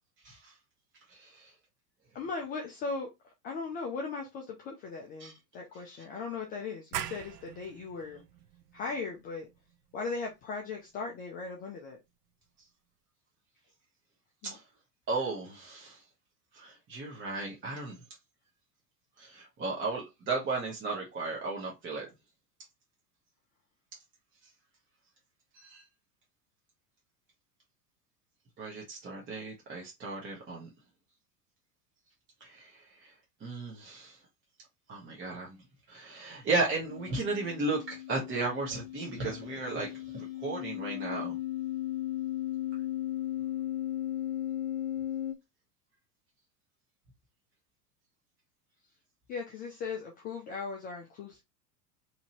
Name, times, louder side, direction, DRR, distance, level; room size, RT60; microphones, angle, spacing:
voice 1, 0.2-0.5 1.1-1.5 5.2-5.3 14.4-14.6 15.1-16.0 16.5-18.0 19.2-22.1 25.5-25.8 28.6-30.7 32.4-33.1 33.4-34.2 34.9-35.6 35.9-41.4, right 3 dB, 25° right, 1.0 m, -35 dB
voice 2, 2.1-3.1 3.4-8.2 8.7-9.5 9.9-12.0 14.4-14.5 49.3-51.4, left 4 dB, 20° left, 0.3 m, -38 dB
sound 1, 6.9-12.3, right 10 dB, 80° right, 0.5 m, -44 dB
sound 2, 36.9-45.3, left 13 dB, 70° left, 0.6 m, -36 dB
2.9 x 2.6 x 2.9 m
hypercardioid pair, 90°, 48 cm